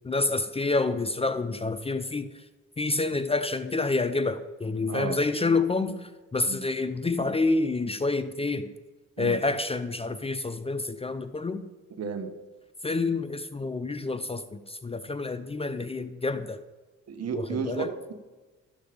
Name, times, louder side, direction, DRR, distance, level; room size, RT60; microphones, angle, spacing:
voice 1, 0.0-2.3 2.8-8.7 9.2-11.6 12.8-16.6 17.3-17.9, left 3 dB, 20° left, 12 dB, 0.6 m, -28 dB
voice 2, 4.9-5.2 6.5-6.6 9.2-9.4 12.0-12.3 17.1-18.1, right 5 dB, 55° right, 8 dB, 1.4 m, -32 dB
13.0 x 7.4 x 5.1 m, 1.2 s
cardioid pair, 90°, 30 cm